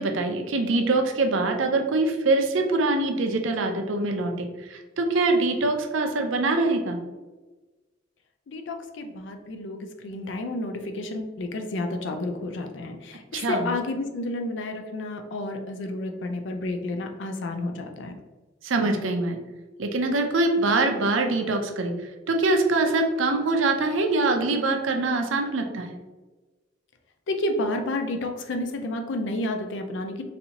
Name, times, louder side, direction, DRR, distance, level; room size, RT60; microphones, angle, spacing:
voice 1, 0.0-7.0 13.3-13.7 18.6-19.4 19.8-21.9 22.3-26.0, right 2 dB, 80° right, 4 dB, 0.6 m, -24 dB
voice 2, 8.5-18.1 27.3-30.3, left 2 dB, 65° left, 5 dB, 0.4 m, -31 dB
4.1 x 2.7 x 2.8 m, 1.2 s
head